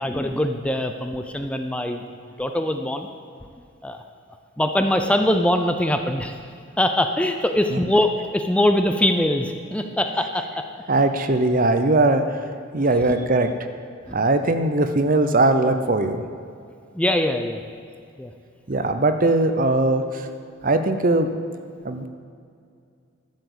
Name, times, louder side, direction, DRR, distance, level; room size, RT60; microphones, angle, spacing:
voice 1, 0.0-2.0 2.4-3.1 3.8-4.0 4.6-6.3 6.8-10.6 16.9-17.6 18.2-18.3, left 1 dB, 5° left, 5 dB, 0.5 m, -22 dB
voice 2, 10.9-12.4 12.7-13.5 14.1-16.2 18.7-20.3 20.6-21.4 21.8-22.1, right 2 dB, 45° right, 8 dB, 0.8 m, -20 dB
11.5 x 7.1 x 8.1 m, 2.4 s
head